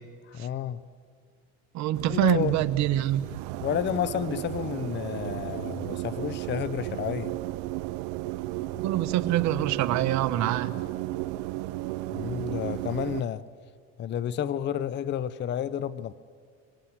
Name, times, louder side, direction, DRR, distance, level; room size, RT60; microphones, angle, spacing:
voice 1, 0.3-0.8 2.1-2.6 3.6-7.3 12.1-13.4 14.0-16.1, left 10 dB, 35° left, 17 dB, 0.7 m, -31 dB
voice 2, 1.7-3.2 8.8-10.7, right 13 dB, 55° right, 10 dB, 1.4 m, -25 dB
sound 1, 1.9-13.2, right 17 dB, 70° right, 0.8 m, -34 dB
25.5 x 24.5 x 7.9 m, 2.1 s
supercardioid pair, 115°, 34 cm